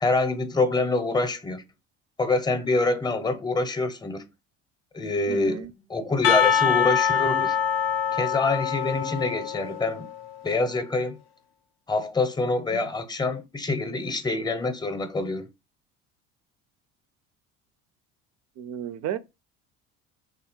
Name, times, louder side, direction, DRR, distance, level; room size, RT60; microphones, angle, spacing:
voice 1, 0.0-1.6 2.2-4.2 4.9-5.6 5.9-7.6 8.1-10.1 10.4-11.2 11.9-15.5, left 3 dB, 15° left, 0.7 m, -26 dB
voice 2, 5.3-5.7 12.7-12.9 18.6-19.2, right 10 dB, 55° right, 0.5 m, -33 dB
Percussion, 6.2-10.1, left 7 dB, 55° left, 0.6 m, -24 dB
3.3 x 2.4 x 4.3 m
supercardioid pair, 85°, 32 cm